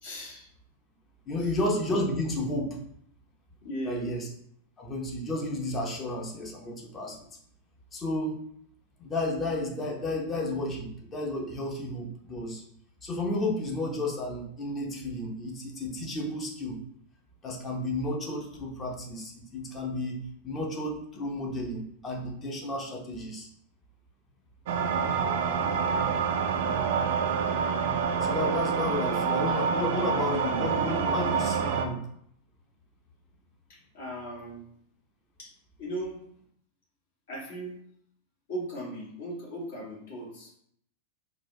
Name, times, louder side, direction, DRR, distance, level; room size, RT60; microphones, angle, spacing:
voice 1, 0.0-0.5 1.3-1.5 3.6-4.2 33.7-34.6 35.4-35.5 35.8-36.2 37.3-37.7 38.5-40.5, right 1 dB, 60° left, -4 dB, 1.5 m, -38 dB
voice 2, 1.3-2.8 3.8-4.3 4.8-7.2 7.9-8.4 9.0-12.6 13.0-16.8 17.4-23.5 28.1-32.0, left 1 dB, 25° left, 0 dB, 0.8 m, -32 dB
sound 1, 24.7-31.8, right 6 dB, 55° right, 0.4 m, -27 dB
4.0 x 2.4 x 2.8 m, 0.67 s
figure-of-eight pair, 90°, 0 cm